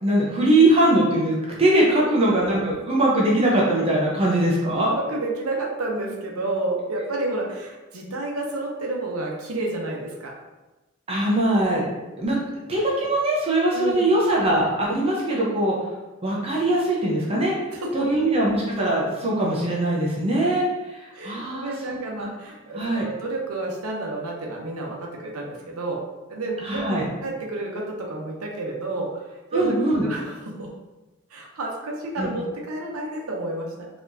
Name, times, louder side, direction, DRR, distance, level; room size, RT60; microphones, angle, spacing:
voice 1, 0.0-4.9 11.1-11.8 12.2-12.4 12.7-15.8 16.2-17.5 17.9-21.9 22.2-22.3 22.7-23.1 26.6-27.1 29.5-30.0 32.2-32.3, right 1 dB, 25° right, -4 dB, 0.7 m, -21 dB
voice 2, 4.7-10.4 13.7-14.1 17.7-18.3 21.1-30.7 31.3-33.9, right 2 dB, 90° right, 0 dB, 0.7 m, -30 dB
4.1 x 2.9 x 2.7 m, 1.1 s
head